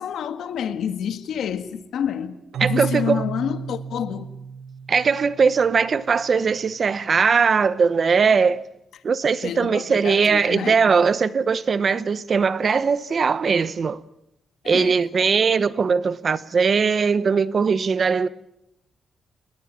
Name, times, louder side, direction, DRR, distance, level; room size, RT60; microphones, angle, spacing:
voice 1, 0.0-4.3 9.4-10.8 14.6-15.3, left 8 dB, 80° left, 1.7 m, -29 dB
Keyboard (musical), 2.5-6.2, right 6 dB, 75° right, 1.5 m, -32 dB
voice 2, 2.6-3.2 4.9-8.6 9.0-14.0 14.7-18.3, right 5 dB, 40° right, 0.9 m, -20 dB
30.0 x 20.5 x 7.4 m
wide cardioid pair, 150°, 0 cm